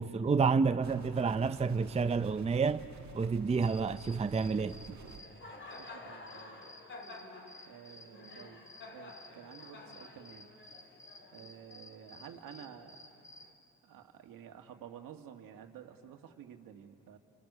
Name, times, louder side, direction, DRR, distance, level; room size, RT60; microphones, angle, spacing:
voice 1, 0.0-2.8 3.1-4.8, right 5 dB, 20° right, 0.6 m, -29 dB
sound 1, 0.8-5.2, right 7 dB, 55° right, 1.6 m, -51 dB
Cricket, 3.5-13.5, left 2 dB, 35° left, 2.7 m, -51 dB
voice 2, 4.9-5.3 5.8-6.6 7.6-8.6 8.9-10.5 11.3-13.0 13.8-17.2, right 9 dB, 80° right, 2.0 m, -51 dB
29.5 x 28.5 x 6.8 m
cardioid pair, 100°, 33 cm